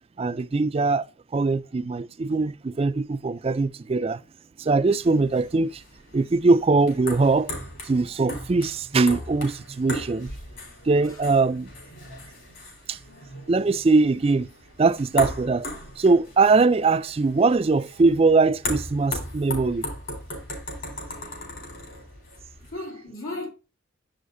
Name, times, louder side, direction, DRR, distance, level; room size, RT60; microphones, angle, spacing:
voice 1, 0.2-1.1 1.3-4.2 4.6-5.8 6.1-7.5 7.8-10.3 10.8-11.7 12.9-13.0 13.5-14.5 14.8-15.7 16.0-19.9, right 3 dB, 30° right, 0.3 m, -21 dB
sound 1, 5.0-22.7, left 1 dB, 65° left, 3.9 m, -37 dB
voice 2, 22.7-23.5, left 2 dB, 85° left, 2.5 m, -36 dB
7.8 x 6.4 x 2.6 m
head